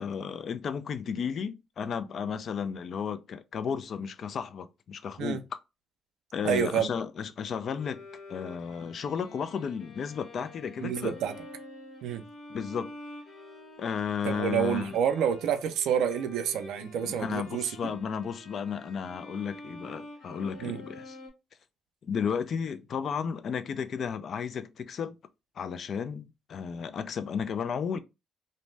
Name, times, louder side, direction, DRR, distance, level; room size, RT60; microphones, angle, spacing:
voice 1, 0.0-5.4 6.3-8.0 8.3-11.1 12.5-12.9 13.8-14.9 17.0-21.2 22.0-25.1 25.6-28.0, left 7 dB, 60° left, 0.3 m, -33 dB
voice 2, 6.4-6.9 10.8-11.3 12.0-12.2 14.2-17.9 20.6-20.8, right 8 dB, 85° right, 0.4 m, -28 dB
Bowed string instrument, 7.8-21.3, left 2 dB, 75° left, 0.9 m, -48 dB
2.6 x 2.1 x 3.1 m
cardioid pair, 90°, 0 cm